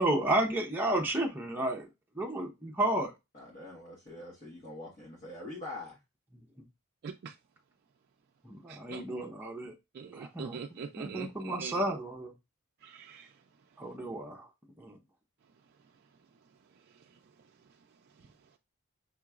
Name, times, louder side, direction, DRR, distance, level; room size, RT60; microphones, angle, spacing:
voice 1, 0.0-1.9 2.2-3.1 8.4-9.7 10.1-10.6 11.1-12.3 13.8-14.5 14.8-15.0, right 1 dB, 10° right, 0.7 m, -31 dB
voice 2, 3.3-6.0, left 2 dB, 40° left, 1.2 m, -44 dB
voice 3, 7.0-7.4 8.7-9.0 9.9-11.8 12.8-13.4 13.7-13.8 15.8-16.0 16.7-18.4, right 6 dB, 50° right, 0.4 m, -45 dB
5.6 x 2.9 x 2.3 m
head